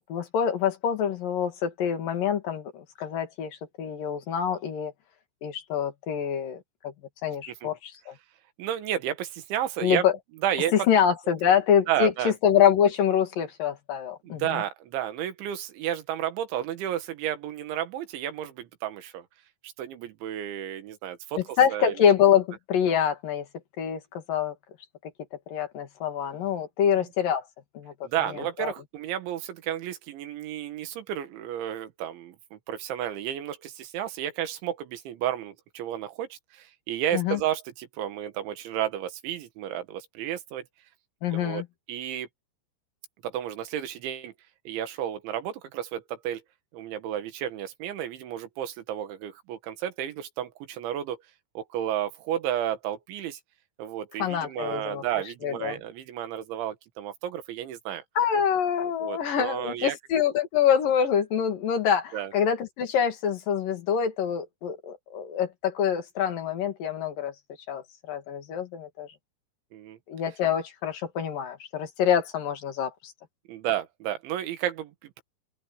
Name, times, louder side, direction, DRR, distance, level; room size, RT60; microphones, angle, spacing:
voice 1, 0.1-4.9 5.4-6.9 7.2-8.1 9.8-10.1 10.7-14.6 21.6-23.5 23.8-24.5 25.5-27.4 27.8-27.9 28.6-28.7 37.1-37.4 41.2-41.7 54.2-55.0 55.4-55.8 58.2-67.3 67.7-69.1 70.1-73.1, left 8 dB, 55° left, 3.4 m, -25 dB
voice 2, 8.6-10.1 10.4-10.9 11.9-12.3 14.2-19.3 19.6-22.1 26.8-27.1 28.0-40.6 41.3-41.6 41.9-42.3 43.2-44.3 44.7-46.4 46.7-51.2 51.6-53.4 53.8-58.0 58.8-60.0 62.1-62.3 69.7-70.0 73.5-75.2, right 11 dB, 85° right, 4.1 m, -32 dB
open air
omnidirectional pair, 5.2 m